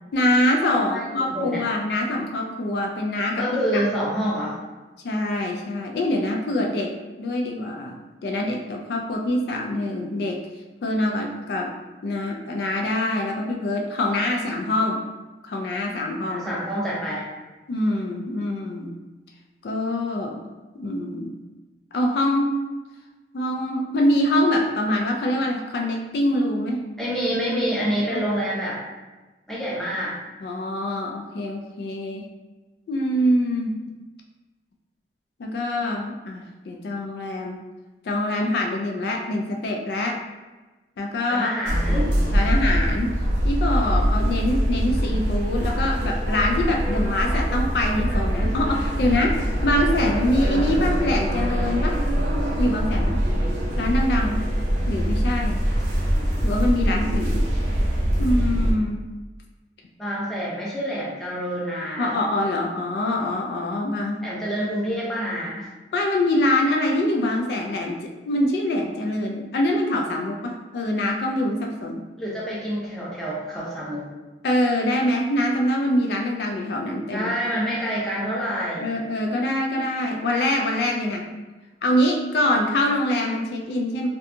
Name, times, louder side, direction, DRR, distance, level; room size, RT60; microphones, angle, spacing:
voice 1, 0.1-3.5 3.7-3.8 5.0-6.9 7.2-7.9 8.2-10.4 10.8-11.8 12.0-15.0 15.4-16.5 17.7-18.9 19.6-20.4 20.7-21.3 21.9-22.5 23.3-26.8 28.1-28.2 30.4-32.2 32.9-33.8 35.4-37.6 38.0-40.2 41.0-41.5 42.3-43.1 43.4-52.0 52.6-53.2 53.8-54.4 54.9-55.7 56.4-57.5 58.2-59.0 62.0-64.3 65.9-72.0 74.4-77.3 78.8-81.3 81.8-84.1, left 1 dB, 60° left, 1 dB, 0.3 m, -24 dB
voice 2, 0.9-1.6 3.4-4.6 16.3-17.2 27.0-28.8 29.5-30.1 41.3-42.1 60.0-62.1 64.2-65.7 72.2-74.1 77.1-78.9, equal, 5° left, -7 dB, 0.5 m, -27 dB
sound 1, 41.7-58.7, equal, 75° right, 0.6 m, -23 dB
2.7 x 2.2 x 2.5 m, 1.2 s
head